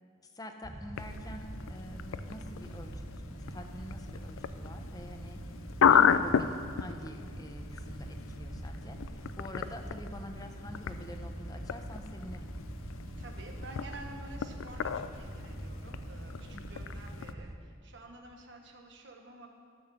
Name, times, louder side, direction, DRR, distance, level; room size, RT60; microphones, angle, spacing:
voice 1, 0.2-3.0 3.3-5.4 5.9-12.5 16.5-16.7, left 1 dB, 20° left, 5 dB, 0.7 m, -46 dB
sound 1, 0.6-17.6, right 1 dB, 20° right, 0.4 m, -44 dB
sound 2, 1.0-17.3, left 7 dB, 85° left, 0.4 m, -33 dB
voice 2, 13.2-19.5, right 2 dB, 60° right, 2 dB, 1.2 m, -50 dB
12.5 x 5.4 x 6.9 m, 2.2 s
head